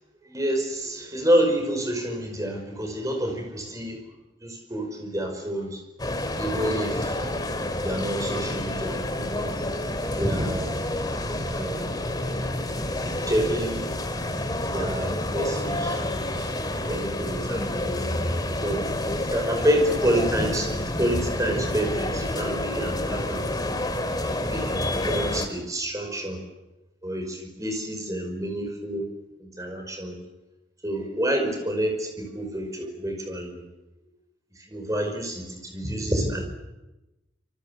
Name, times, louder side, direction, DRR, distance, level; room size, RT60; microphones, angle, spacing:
voice 1, 0.2-4.0 4.4-5.8 6.4-7.4 7.8-9.5 10.1-10.8 11.4-11.9 13.3-13.8 14.7-16.0 16.4-18.0 18.6-23.6 24.2-24.8 25.1-26.4 27.0-29.1 29.4-30.2 30.8-33.6 34.6-36.5, right 1 dB, 15° right, 3 dB, 5.3 m, -28 dB
sound 1, 6.0-25.5, left 1 dB, 20° left, 2.5 m, -29 dB
26.0 x 23.0 x 8.3 m, 1.0 s
head